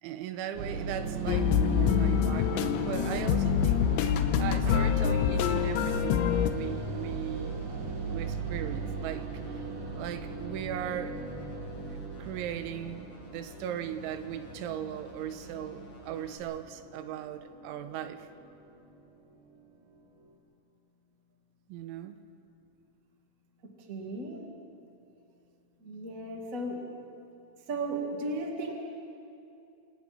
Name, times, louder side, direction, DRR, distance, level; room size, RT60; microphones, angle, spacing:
voice 1, 0.0-3.9 4.4-7.6 8.1-9.3 9.9-11.2 12.2-18.3 21.7-22.2, right 10 dB, 90° right, 9 dB, 3.3 m, -38 dB
sound 1, 0.6-18.9, right 4 dB, 70° right, 4.2 m, -38 dB
sound 2, 1.3-6.5, left 9 dB, 85° left, 3.2 m, -26 dB
sound 3, 1.9-16.4, left 2 dB, 45° left, 5.2 m, -50 dB
voice 2, 23.9-24.4 25.8-26.8 27.7-28.7, right 2 dB, 30° right, 0 dB, 1.7 m, -35 dB
27.0 x 27.0 x 4.4 m, 2.6 s
omnidirectional pair, 5.4 m